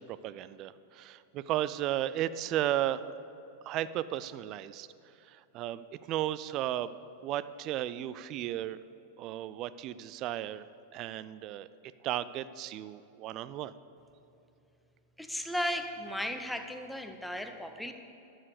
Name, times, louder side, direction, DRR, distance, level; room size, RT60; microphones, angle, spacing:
voice 1, 0.0-3.1 3.7-4.9 5.3-6.9 7.2-8.8 9.2-10.7 10.9-11.7 12.0-13.7, right 12 dB, 40° right, 16 dB, 0.3 m, -34 dB
voice 2, 15.2-17.9, equal, 5° left, 7 dB, 0.7 m, -35 dB
12.5 x 6.5 x 6.7 m, 2.8 s
figure-of-eight pair, 90°, 0 cm